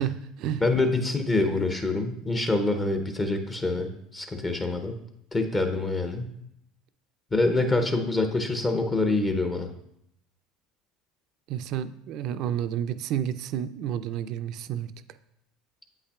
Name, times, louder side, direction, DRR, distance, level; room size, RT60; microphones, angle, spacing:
voice 1, 0.0-0.6 11.5-14.9, right 10 dB, 60° right, 13 dB, 0.3 m, -30 dB
voice 2, 0.6-5.0 5.3-6.3 7.3-9.7, left 2 dB, 25° left, 5 dB, 0.6 m, -26 dB
8.0 x 5.5 x 2.3 m, 0.77 s
hypercardioid pair, 80°, 0 cm